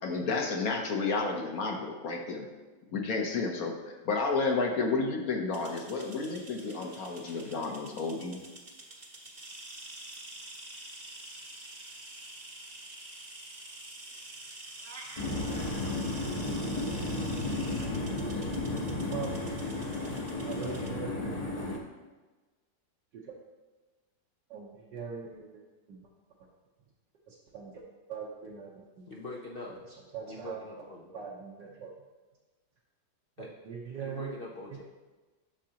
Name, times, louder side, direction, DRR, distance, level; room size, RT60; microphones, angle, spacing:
voice 1, 0.0-2.5 2.9-8.4, left 4 dB, 60° left, 2 dB, 1.2 m, -31 dB
sound 1, 5.5-20.9, right 2 dB, 30° right, 0.8 m, -47 dB
sound 2, 14.8-15.3, right 3 dB, 50° right, 1.1 m, -47 dB
sound 3, 15.2-21.8, left 2 dB, 30° left, 0.8 m, -33 dB
voice 2, 20.4-21.3 23.1-23.4 24.5-25.6 25.9-26.0 27.3-27.8 28.1-29.1 29.7-29.8 30.1-30.6 31.1-31.9 33.6-34.3, right 6 dB, 75° right, -4 dB, 1.6 m, -41 dB
voice 3, 29.1-29.8 30.3-31.2 33.4-33.5 34.0-34.8, left 2 dB, 75° left, -2 dB, 0.5 m, -43 dB
10.0 x 6.5 x 2.9 m, 1.2 s
omnidirectional pair, 1.9 m